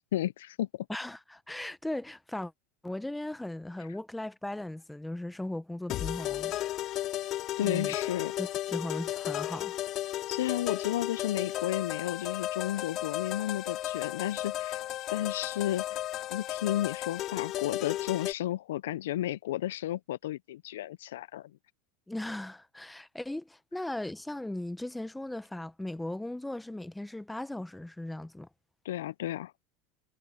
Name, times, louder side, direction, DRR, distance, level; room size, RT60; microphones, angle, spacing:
voice 1, 0.1-0.9 7.6-8.3 10.3-14.8 15.1-16.0 16.3-21.5 28.8-29.5, left 13 dB, 75° left, 0.7 m, -33 dB
voice 2, 0.9-2.5 2.8-6.6 7.6-7.9 8.4-9.7 22.1-28.5, left 1 dB, 5° left, 1.4 m, -37 dB
sound 1, 5.9-18.3, left 14 dB, 50° left, 3.5 m, -34 dB
hypercardioid pair, 85°, 0 cm